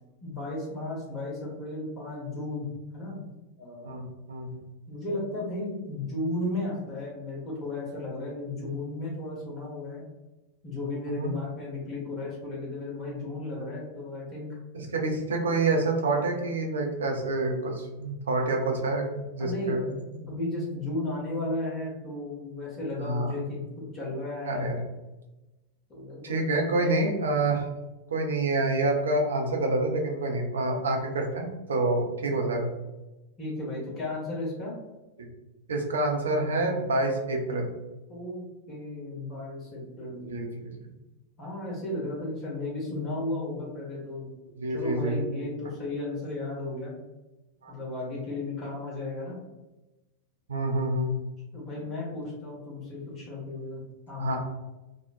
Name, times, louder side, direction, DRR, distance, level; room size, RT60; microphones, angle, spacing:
voice 1, 0.2-3.2 3.6-3.9 4.9-10.0 10.6-14.5 19.4-19.9 20.3-23.6 23.9-24.7 25.9-27.0 33.4-34.7 38.1-40.4 41.4-44.3 44.7-46.9 47.7-49.4 51.5-54.4, left 2 dB, 30° left, -4 dB, 1.0 m, -34 dB
voice 2, 3.8-4.6 11.1-11.3 14.7-20.3 23.0-23.3 24.5-24.8 26.2-27.6 28.1-32.7 35.7-37.7 40.3-40.7 44.6-45.2 47.6-47.7 50.5-51.1 54.2-54.4, right 2 dB, 65° right, 2 dB, 0.5 m, -27 dB
2.6 x 2.1 x 2.5 m, 1.0 s
figure-of-eight pair, 90°, 0 cm